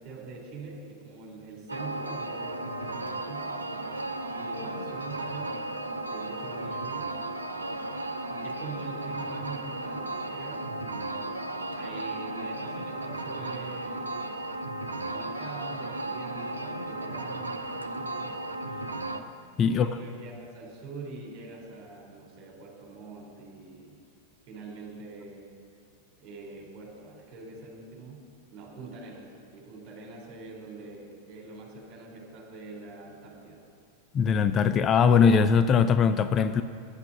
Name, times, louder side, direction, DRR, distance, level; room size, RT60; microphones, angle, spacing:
voice 1, 0.0-3.6 4.4-5.5 6.1-7.1 8.3-11.3 11.7-14.2 14.9-18.4 18.7-18.8 19.7-24.0 24.5-25.5 26.2-28.2 28.5-29.2 29.5-33.6, right 3 dB, 35° right, -1 dB, 3.8 m, -44 dB
sound 1, 1.7-19.2, right 2 dB, 80° right, 0.6 m, -35 dB
voice 2, 34.1-36.6, left 6 dB, 25° left, 10 dB, 0.4 m, -21 dB
10.0 x 8.3 x 8.7 m, 2.3 s
figure-of-eight pair, 90°, 0 cm